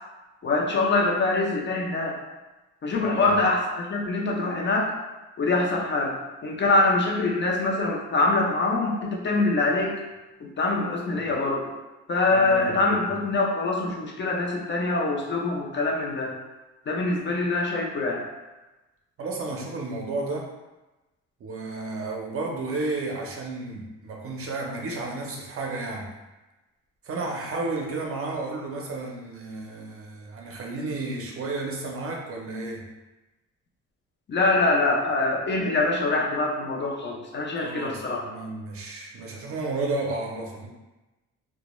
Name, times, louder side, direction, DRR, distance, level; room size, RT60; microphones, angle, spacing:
voice 1, 0.4-2.2 2.8-4.9 5.4-6.2 6.4-10.0 10.4-11.7 12.1-16.3 16.9-18.2 34.3-38.2, left 2 dB, 40° left, -1 dB, 0.6 m, -24 dB
voice 2, 3.0-3.3 11.2-11.3 12.3-12.8 19.2-20.5 21.4-26.1 27.0-32.8 37.6-40.7, right 3 dB, 50° right, 0 dB, 0.6 m, -32 dB
2.2 x 2.1 x 3.0 m, 1.1 s
cardioid pair, 90°, 30 cm